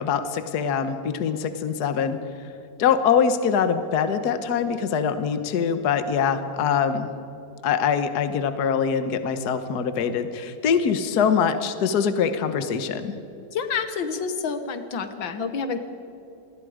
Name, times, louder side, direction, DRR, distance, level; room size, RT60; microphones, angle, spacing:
voice 1, 0.0-2.2 2.8-7.1 7.6-13.1, left 7 dB, 60° left, 10 dB, 1.6 m, -23 dB
voice 2, 13.5-15.8, left 5 dB, 90° left, 9 dB, 2.1 m, -28 dB
27.0 x 20.0 x 5.0 m, 2.8 s
omnidirectional pair, 2.0 m